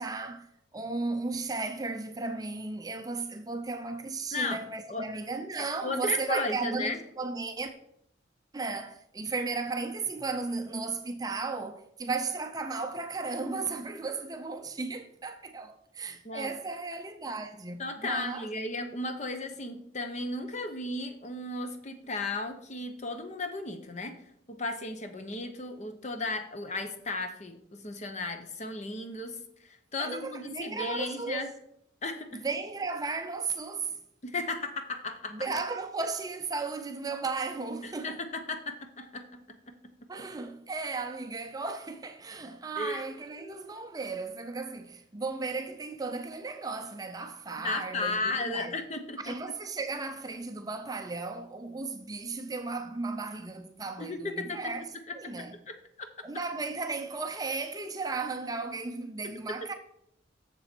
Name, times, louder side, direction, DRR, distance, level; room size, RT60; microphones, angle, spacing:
voice 1, 0.0-7.7 8.5-18.5 30.0-31.5 32.3-34.0 35.3-38.2 40.1-48.8 49.2-54.8 55.1-55.6 56.2-59.7, right 3 dB, 20° right, 0.5 m, -35 dB
voice 2, 4.3-4.6 4.9-5.1 5.8-7.0 16.2-16.5 17.8-24.2 24.5-29.4 29.6-31.5 32.0-32.4 34.2-35.4 37.8-40.1 42.8-43.0 43.4-43.7 47.6-49.4 54.0-54.6 55.2-56.1, left 2 dB, 40° left, 0.8 m, -35 dB
7.1 x 6.9 x 4.4 m
head